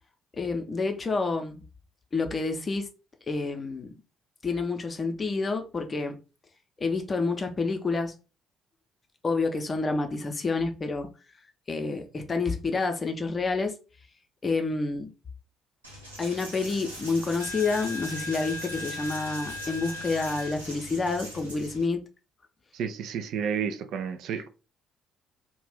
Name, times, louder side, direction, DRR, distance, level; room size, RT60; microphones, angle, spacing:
voice 1, 0.4-1.6 2.1-2.9 3.3-4.0 4.4-6.2 6.8-8.1 9.2-11.1 11.7-13.8 14.4-15.1 16.2-22.0, left 3 dB, 30° left, 0.6 m, -28 dB
Coin (dropping), 15.8-21.8, left 1 dB, 90° right, 0.8 m, -38 dB
voice 2, 22.7-24.5, right 7 dB, 60° right, 0.3 m, -31 dB
2.4 x 2.2 x 3.4 m
figure-of-eight pair, 45°, 0 cm